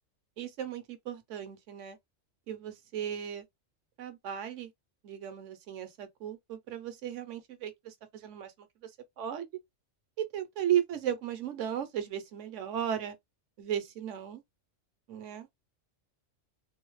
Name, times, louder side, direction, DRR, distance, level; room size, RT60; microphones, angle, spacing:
voice 1, 0.4-2.0 2.5-3.4 4.0-4.7 5.0-8.9 9.2-9.5 10.2-13.1 13.6-14.4 15.1-15.5, right 10 dB, 75° right, 1.0 m, -35 dB
2.6 x 2.1 x 3.0 m
omnidirectional pair, 1.3 m